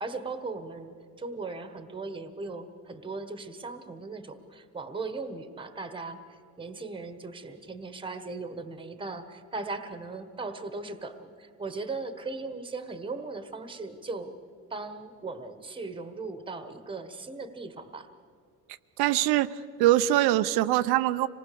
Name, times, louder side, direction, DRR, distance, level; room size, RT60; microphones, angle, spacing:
voice 1, 0.0-14.3 14.7-18.1, right 3 dB, 15° right, 10 dB, 1.3 m, -38 dB
voice 2, 19.0-19.5 19.8-21.3, right 14 dB, 80° right, 11 dB, 0.7 m, -23 dB
26.5 x 19.5 x 6.9 m, 2.2 s
cardioid pair, 160°, 38 cm